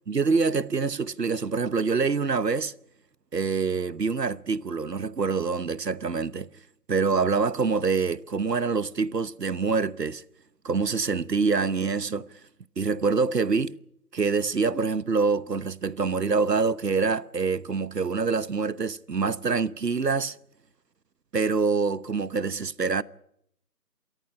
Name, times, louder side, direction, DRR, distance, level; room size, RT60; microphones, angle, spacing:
voice 1, 0.1-2.7 3.3-6.5 6.9-10.2 10.6-12.3 12.8-13.8 14.1-20.4 21.3-23.0, right 4 dB, 85° right, 1.1 m, -25 dB
27.5 x 14.0 x 9.8 m
figure-of-eight pair, 165°, 48 cm